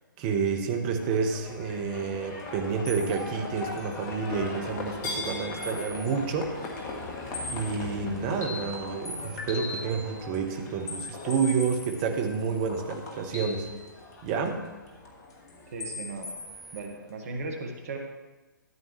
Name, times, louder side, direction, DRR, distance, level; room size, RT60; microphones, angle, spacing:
voice 1, 0.2-6.5 7.5-13.7 14.2-14.6, right 5 dB, 30° right, 4 dB, 1.2 m, -29 dB
Livestock farm animals working animals, 1.0-17.4, left 2 dB, 25° left, 1.6 m, -40 dB
sound 1, 2.4-2.5 2.9-4.8 5.6-6.2 6.5-7.9 8.2-10.0 10.3-14.5 14.9-15.6 15.8-16.8, left 2 dB, 50° left, 2.2 m, -40 dB
voice 2, 15.7-16.3 16.7-18.0, right 3 dB, 45° right, 3 dB, 1.5 m, -36 dB
13.5 x 9.1 x 3.2 m, 1.2 s
figure-of-eight pair, 130°, 11 cm